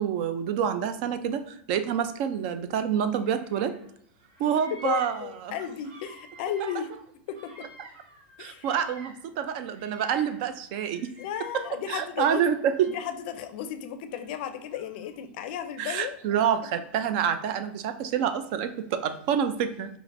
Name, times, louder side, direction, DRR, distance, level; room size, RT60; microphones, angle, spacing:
voice 1, 0.0-3.7 4.4-5.5 8.4-11.1 11.5-11.6 11.9-12.9 15.8-19.9, right 8 dB, 50° right, 10 dB, 0.4 m, -27 dB
Bird vocalization bird call bird song, 3.2-3.9 4.2-9.3 9.5-11.9 12.4-13.4 14.1-15.2, right 1 dB, 75° right, 1.3 m, -51 dB
voice 2, 4.7-6.9 7.3-7.7 8.4-8.7 11.2-12.4 12.9-16.2, left 9 dB, 60° left, 9 dB, 0.4 m, -34 dB
4.6 x 2.5 x 2.5 m, 0.70 s
supercardioid pair, 145°, 6 cm